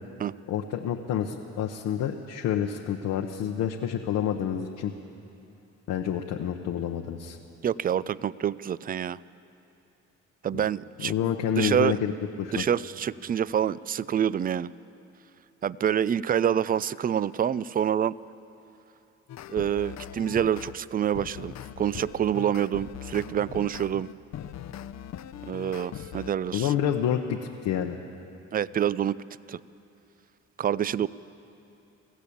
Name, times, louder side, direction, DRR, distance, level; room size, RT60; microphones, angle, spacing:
voice 1, 0.5-4.9 5.9-7.4 11.0-12.1 12.4-12.6 26.5-28.0, left 9 dB, 90° left, 1 dB, 1.0 m, -28 dB
voice 2, 7.6-9.2 10.4-11.1 11.6-12.0 12.5-14.7 15.6-18.1 19.5-24.1 25.5-26.7 28.5-29.2 29.5-29.6 30.6-31.1, right 9 dB, 30° right, 20 dB, 0.4 m, -27 dB
sound 1, 19.3-20.8 21.1-26.3, left 10 dB, 60° left, 0.7 m, -41 dB
20.5 x 15.0 x 8.6 m, 2.8 s
cardioid pair, 90°, 30 cm